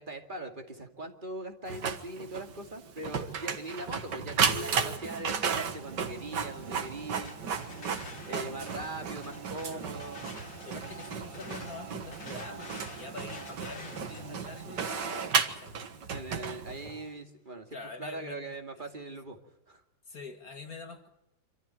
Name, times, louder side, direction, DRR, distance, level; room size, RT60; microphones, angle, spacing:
voice 1, 0.0-7.4 8.3-10.2 16.1-19.4 19.7-19.8, right 2 dB, 25° right, 4 dB, 2.5 m, -41 dB
Printer, 1.7-17.0, right 6 dB, 65° right, 2.1 m, -34 dB
sound 1, 7.0-16.8, left 4 dB, 85° left, 3.4 m, -50 dB
voice 2, 8.1-8.9 9.7-9.9 10.6-15.7 17.7-18.6 20.1-21.1, left 3 dB, 50° left, 6 dB, 2.4 m, -45 dB
26.5 x 14.0 x 9.0 m, 0.83 s
omnidirectional pair, 2.0 m